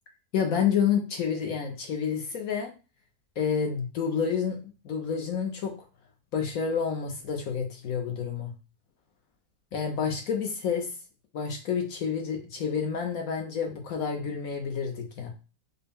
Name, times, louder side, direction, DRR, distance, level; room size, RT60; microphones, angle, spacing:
voice 1, 0.3-2.7 3.4-4.6 4.8-5.7 6.3-8.5 9.7-10.9 11.3-15.3, left 7 dB, 65° left, 2 dB, 1.0 m, -29 dB
4.2 x 2.1 x 3.5 m, 0.33 s
omnidirectional pair, 1.8 m